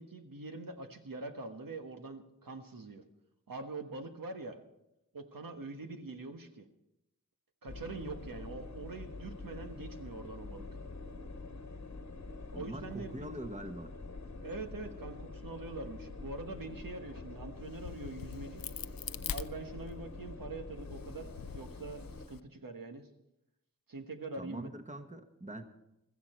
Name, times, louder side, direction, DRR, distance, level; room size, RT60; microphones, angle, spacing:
voice 1, 0.0-3.0 3.5-4.6 5.1-6.7 7.6-10.6 12.5-13.3 14.4-18.6 19.3-23.1 23.9-24.7, right 3 dB, 85° right, 5 dB, 1.4 m, -44 dB
sound 1, 7.7-22.3, left 3 dB, 55° left, 1.2 m, -46 dB
voice 2, 12.5-13.9 24.4-25.6, right 1 dB, 20° right, 7 dB, 1.3 m, -43 dB
Crack, 17.6-20.2 20.7-22.4, left 8 dB, 90° left, 0.5 m, -43 dB
16.0 x 14.0 x 4.4 m, 0.87 s
wide cardioid pair, 65°, 33 cm